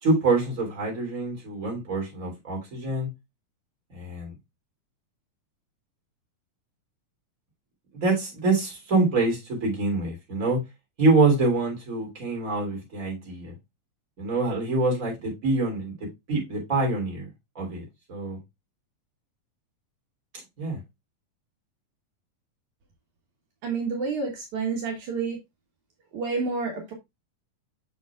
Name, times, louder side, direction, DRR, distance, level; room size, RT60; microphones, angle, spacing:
voice 1, 0.0-3.1 3.9-4.3 7.9-10.6 11.0-13.5 14.2-15.9 16.3-17.3 17.5-18.4 20.6-20.8, right 3 dB, 25° right, 3.2 m, -25 dB
voice 2, 23.6-25.4 26.1-26.9, right 4 dB, 70° right, 2.7 m, -29 dB
7.1 x 6.7 x 2.3 m
omnidirectional pair, 3.6 m